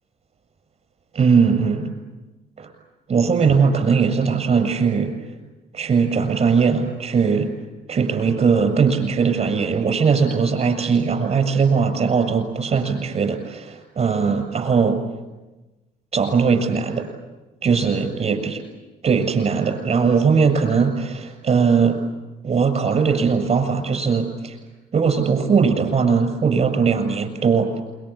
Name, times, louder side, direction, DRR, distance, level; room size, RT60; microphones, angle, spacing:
voice 1, 1.1-1.9 2.6-2.7 3.1-5.1 5.7-7.5 7.9-15.0 16.1-17.1 17.6-18.6 19.0-22.0 22.4-24.6 24.9-27.8, right 5 dB, 40° right, 7 dB, 7.1 m, -19 dB
28.0 x 24.5 x 8.5 m, 1.1 s
cardioid pair, 110°, 17 cm